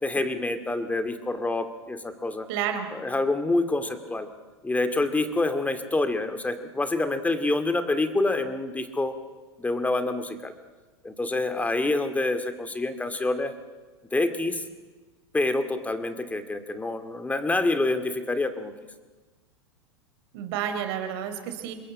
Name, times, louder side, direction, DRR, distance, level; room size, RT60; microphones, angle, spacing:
voice 1, 0.0-2.5 2.9-4.3 4.6-9.1 9.6-10.5 11.0-13.5 14.1-14.6 15.3-18.7, left 2 dB, 10° left, 9 dB, 2.4 m, -27 dB
voice 2, 2.5-2.9 20.3-21.7, right 9 dB, 60° right, 7 dB, 4.3 m, -30 dB
27.0 x 21.0 x 8.7 m, 1.3 s
hypercardioid pair, 105°, 15 cm